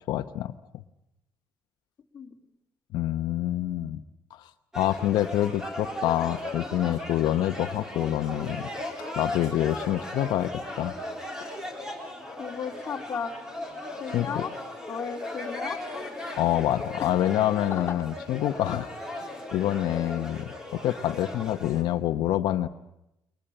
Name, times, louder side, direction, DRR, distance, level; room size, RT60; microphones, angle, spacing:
voice 1, 0.1-0.5 2.9-4.0 4.3-8.7 9.2-11.0 14.1-14.4 16.4-22.7, left 13 dB, 80° left, 8 dB, 0.9 m, -27 dB
sound 1, 4.7-21.8, left 1 dB, 10° right, 3.4 m, -37 dB
voice 2, 12.4-13.3 13.9-14.5 14.9-15.8 17.0-17.1 17.7-17.9, left 6 dB, 30° left, 2 dB, 2.6 m, -34 dB
22.5 x 20.0 x 9.0 m, 0.85 s
cardioid pair, 165°, 7 cm